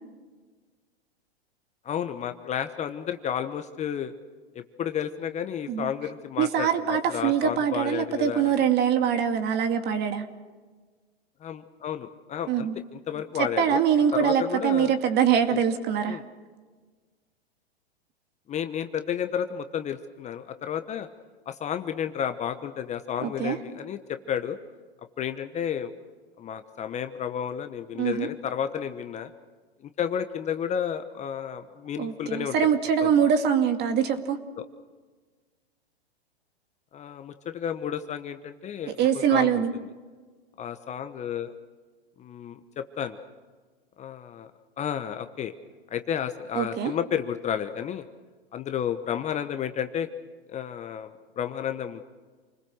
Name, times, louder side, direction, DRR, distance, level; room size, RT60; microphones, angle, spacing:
voice 1, 1.8-4.1 4.5-8.5 11.4-13.8 14.1-14.9 15.5-15.6 16.1-16.2 18.5-21.1 21.5-24.6 25.2-25.9 26.4-29.3 29.8-32.6 33.0-33.3 34.6-34.7 36.9-39.6 40.6-41.5 42.2-43.2 44.0-44.5 44.8-45.5 45.9-48.0 48.5-50.1 50.5-52.0, left 9 dB, 20° left, 9 dB, 1.1 m, -32 dB
voice 2, 6.4-10.3 12.5-12.8 13.4-16.2 23.2-23.6 28.0-28.3 32.0-34.4 39.0-39.7 46.5-46.9, right 8 dB, 30° right, 7 dB, 2.3 m, -23 dB
28.5 x 20.5 x 6.5 m, 1.4 s
hypercardioid pair, 110°, 31 cm